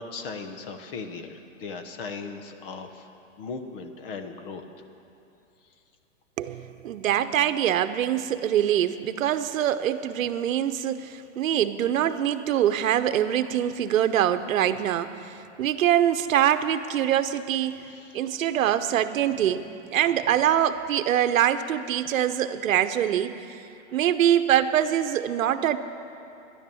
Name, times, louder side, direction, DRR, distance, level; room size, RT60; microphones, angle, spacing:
voice 1, 0.0-3.1 3.4-4.6 17.9-18.3, left 4 dB, 45° left, 7 dB, 1.1 m, -38 dB
voice 2, 6.4-15.3 15.6-17.8 18.1-19.6 19.9-23.5 23.9-25.8, right 10 dB, 85° right, 11 dB, 0.8 m, -24 dB
13.5 x 10.5 x 7.0 m, 2.7 s
hypercardioid pair, 165°, 39 cm